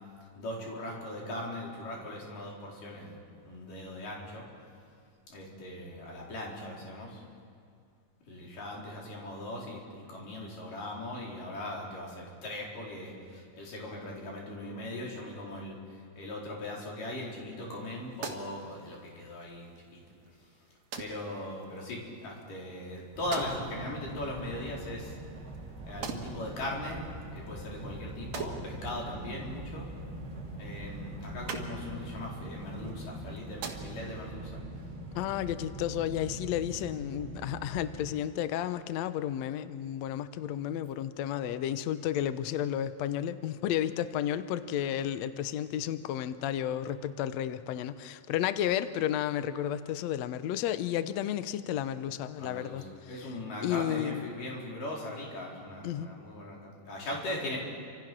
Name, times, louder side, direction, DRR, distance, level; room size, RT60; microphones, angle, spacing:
voice 1, 0.4-3.2 3.5-4.4 5.3-7.2 8.3-20.0 21.0-25.2 25.8-27.1 27.3-29.9 30.6-34.5 52.4-57.6, left 1 dB, 60° left, -2 dB, 5.8 m, -39 dB
sound 1, 17.7-34.3, right 5 dB, 55° right, 2.8 m, -46 dB
sound 2, 23.1-38.1, right 1 dB, 30° right, 3.0 m, -43 dB
voice 2, 35.1-52.8 53.6-54.3 55.8-56.1, left 11 dB, 90° left, 12 dB, 1.5 m, -32 dB
30.0 x 26.0 x 6.1 m, 2.4 s
omnidirectional pair, 4.3 m